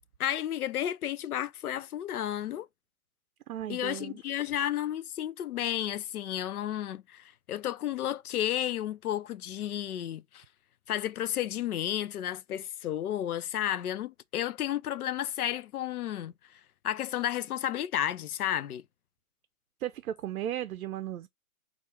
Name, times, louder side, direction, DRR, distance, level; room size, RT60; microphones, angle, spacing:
voice 1, 0.2-2.7 3.7-10.4 10.9-18.8, left 11 dB, 85° left, 0.6 m, -32 dB
voice 2, 3.5-4.2 19.8-21.3, right 11 dB, 80° right, 0.5 m, -35 dB
3.4 x 2.4 x 4.3 m
hypercardioid pair, 170°, 43 cm